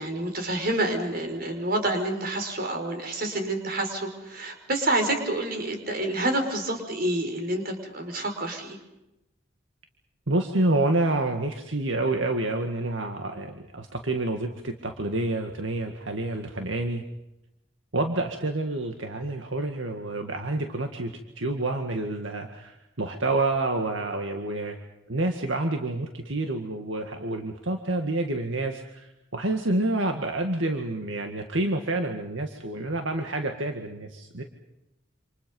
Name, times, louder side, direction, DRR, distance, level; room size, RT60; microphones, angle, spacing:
voice 1, 0.0-8.8, right 1 dB, 50° right, 5 dB, 5.7 m, -28 dB
voice 2, 10.3-17.0 17.9-24.8 25.1-34.4, right 2 dB, 80° right, 4 dB, 2.0 m, -28 dB
28.5 x 27.5 x 5.5 m, 0.91 s
head